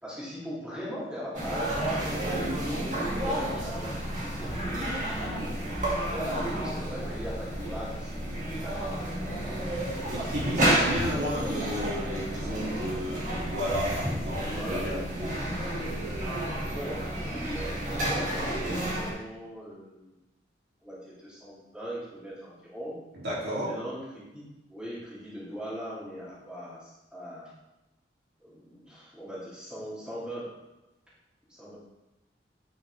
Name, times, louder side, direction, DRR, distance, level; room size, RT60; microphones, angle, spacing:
voice 1, 0.0-1.8 2.1-4.0 4.3-5.5 6.1-9.1 14.4-14.9 16.6-20.1 20.8-23.0 23.6-27.5 28.4-30.5 31.5-31.8, equal, 5° right, -9 dB, 2.9 m, -40 dB
sound 1, 1.3-19.1, right 1 dB, 45° right, 2.0 m, -31 dB
voice 2, 10.1-15.4 23.1-23.7, equal, 65° right, -7 dB, 2.8 m, -33 dB
8.9 x 6.3 x 3.3 m, 0.98 s
head